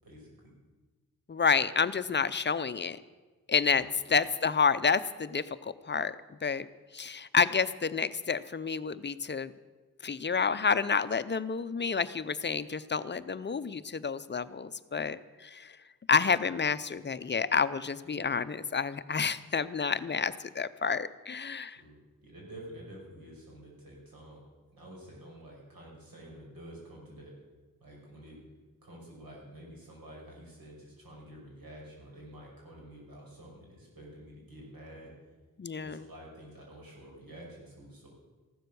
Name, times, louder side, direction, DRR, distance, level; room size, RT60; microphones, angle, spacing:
voice 1, 0.0-0.5 3.6-4.0 21.7-24.4 24.7-27.3 27.8-28.4 28.8-35.1 35.8-38.1, right 1 dB, 85° right, -2 dB, 5.7 m, -49 dB
voice 2, 1.3-3.0 3.5-6.2 6.4-6.7 6.9-9.5 10.0-15.8 16.1-21.8 35.6-36.0, left 5 dB, 30° left, 14 dB, 0.5 m, -29 dB
15.0 x 12.5 x 6.9 m, 1.3 s
wide cardioid pair, 160°, 34 cm